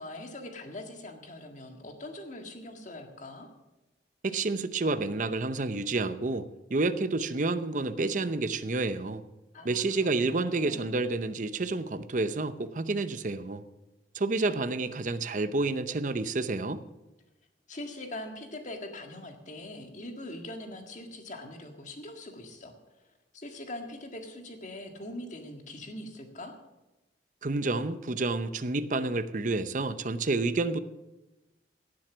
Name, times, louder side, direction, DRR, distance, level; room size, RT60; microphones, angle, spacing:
voice 1, 0.0-3.5 9.5-10.9 17.7-26.5, left 1 dB, 45° left, 4 dB, 1.8 m, -42 dB
voice 2, 4.2-9.2 9.6-13.6 14.1-16.8 27.4-30.8, right 3 dB, 45° right, 12 dB, 0.7 m, -29 dB
17.0 x 7.6 x 6.1 m, 1.0 s
head